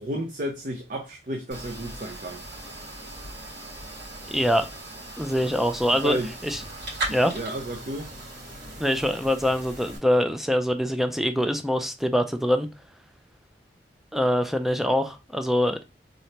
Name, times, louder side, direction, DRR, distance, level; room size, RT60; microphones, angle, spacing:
voice 1, 0.0-2.4 6.0-6.3 7.1-8.1, right 1 dB, 45° right, 0.6 m, -32 dB
sound 1, 1.5-10.0, right 2 dB, 70° right, 2.6 m, -38 dB
voice 2, 4.3-4.7 5.2-6.2 6.4-6.6 7.1-7.3 8.8-12.7 14.1-15.8, equal, ahead, 0.3 m, -24 dB
3.9 x 3.2 x 2.8 m
head